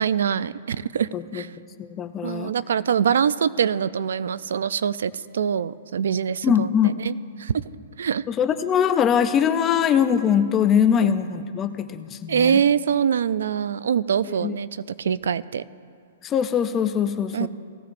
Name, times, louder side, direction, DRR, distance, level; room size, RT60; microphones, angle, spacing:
voice 1, 0.0-1.5 2.2-7.5 8.0-8.2 11.0-11.1 12.3-15.6 17.3-17.5, right 7 dB, 75° right, 17 dB, 0.3 m, -24 dB
voice 2, 1.1-1.4 1.8-2.5 6.4-7.0 8.3-12.6 14.4-14.6 16.2-17.5, left 8 dB, 15° left, 10 dB, 0.4 m, -22 dB
18.0 x 15.0 x 2.5 m, 2.3 s
hypercardioid pair, 175°, 0 cm